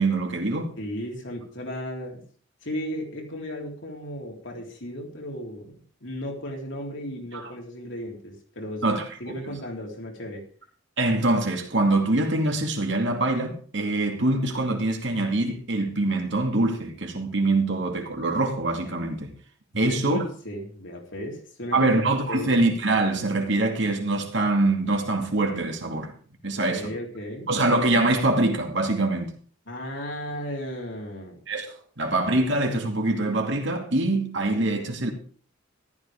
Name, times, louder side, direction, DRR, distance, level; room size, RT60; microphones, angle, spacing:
voice 1, 0.0-0.7 7.3-7.4 8.8-9.0 11.0-19.3 19.7-20.2 21.7-26.1 26.4-26.9 27.5-29.3 31.5-35.1, right 2 dB, 60° right, 2.5 m, -24 dB
voice 2, 0.8-2.3 2.6-10.5 19.8-21.9 22.3-22.5 26.5-27.5 29.7-31.4, equal, 65° left, 3.5 m, -35 dB
14.0 x 12.5 x 3.6 m
head